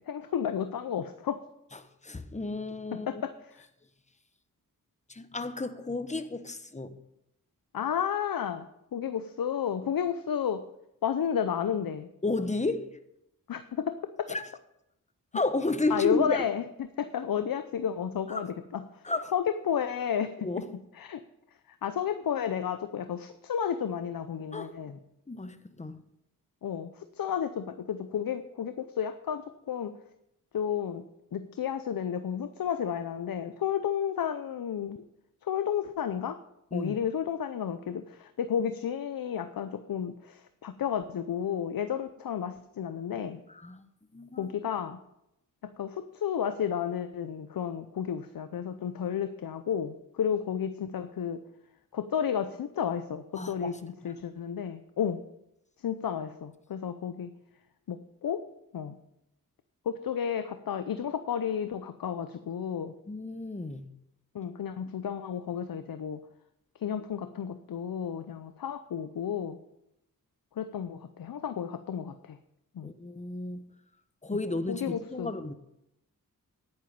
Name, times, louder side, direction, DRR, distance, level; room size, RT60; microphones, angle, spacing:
voice 1, 0.1-1.4 2.9-3.7 7.7-8.7 8.9-10.6 11.0-12.1 13.5-14.0 15.9-18.8 19.3-20.5 21.0-21.2 21.8-25.0 26.6-29.9 30.5-31.0 31.3-35.0 35.4-36.4 36.7-43.4 44.4-45.0 45.8-51.4 51.9-55.2 55.8-57.3 57.9-58.4 58.7-59.0 59.9-62.9 64.3-66.2 66.8-69.6 70.6-72.4 72.8-72.9 74.7-75.3, left 8 dB, 80° left, 0.7 m, -32 dB
voice 2, 2.0-3.2 5.1-6.9 12.2-12.9 14.3-14.5 15.3-16.5 18.3-18.4 19.0-19.3 20.4-20.7 24.5-24.7 25.3-26.0 36.7-37.0 43.5-43.9 44.1-44.5 53.3-53.8 63.1-63.9 72.8-73.6 74.2-75.5, left 2 dB, 20° left, 1.0 m, -32 dB
10.5 x 9.0 x 5.3 m
cardioid pair, 65°, 34 cm